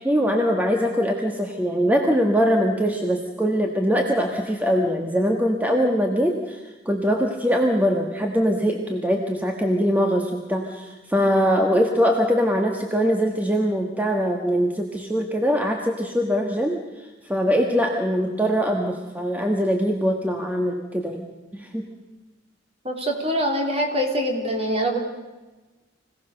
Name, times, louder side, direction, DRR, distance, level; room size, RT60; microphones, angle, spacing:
voice 1, 0.0-6.6 6.8-16.8 17.3-21.3 21.5-21.9, equal, 10° right, 2 dB, 1.5 m, -22 dB
voice 2, 22.8-25.0, equal, 35° right, 2 dB, 3.4 m, -24 dB
26.0 x 17.5 x 6.6 m, 1.2 s
head